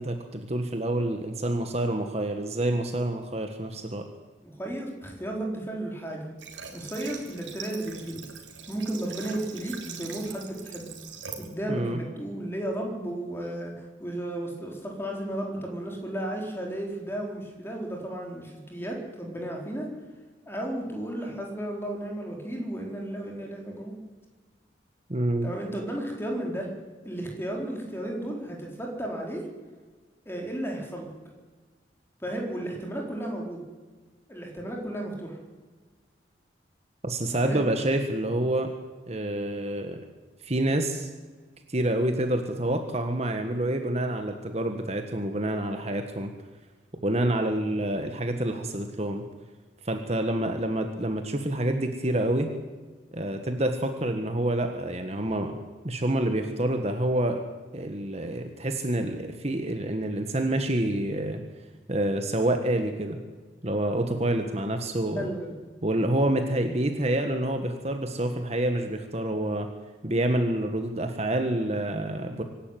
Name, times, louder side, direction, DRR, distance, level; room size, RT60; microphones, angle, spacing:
voice 1, 0.0-4.1 11.7-12.0 25.1-25.5 37.0-38.7 39.1-40.0 40.4-41.1 41.7-46.3 47.0-49.2 49.8-52.5 53.1-55.6 55.8-57.4 57.7-61.4 61.9-63.2 63.6-65.3 65.8-69.7 70.0-72.4, right 1 dB, 35° right, 6 dB, 1.5 m, -27 dB
voice 2, 4.4-6.3 6.7-8.2 8.7-10.9 11.4-19.9 20.5-23.9 25.4-26.7 27.0-29.4 30.2-31.1 32.2-33.6 34.3-35.4 37.4-37.6 65.1-65.6, right 1 dB, 15° left, 0 dB, 4.5 m, -34 dB
Water / Water tap faucet, 6.4-11.5, right 6 dB, 90° right, 3.4 m, -42 dB
25.0 x 11.5 x 9.3 m, 1.4 s
head